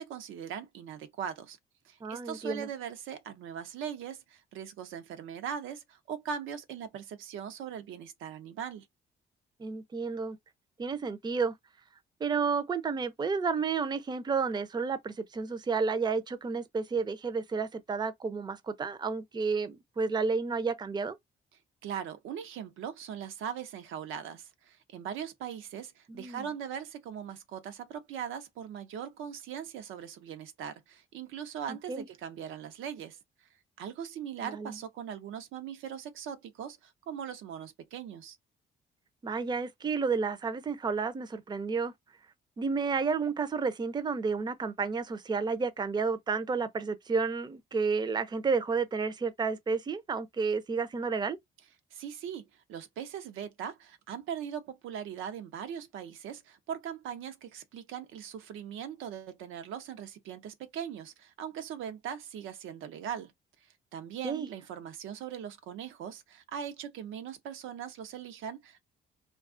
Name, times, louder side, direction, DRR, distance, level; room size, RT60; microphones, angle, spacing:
voice 1, 0.0-1.6 1.8-8.9 21.8-33.2 33.8-38.4 51.9-63.3 63.6-68.8, right 8 dB, 85° right, 0.6 m, -40 dB
voice 2, 2.0-2.7 9.6-10.4 10.8-11.5 12.2-21.2 26.1-26.4 31.9-32.0 34.4-34.7 39.2-41.9 42.6-51.4 64.2-64.5, right 5 dB, 20° right, 0.5 m, -31 dB
2.3 x 2.3 x 2.4 m
cardioid pair, 90°, 20 cm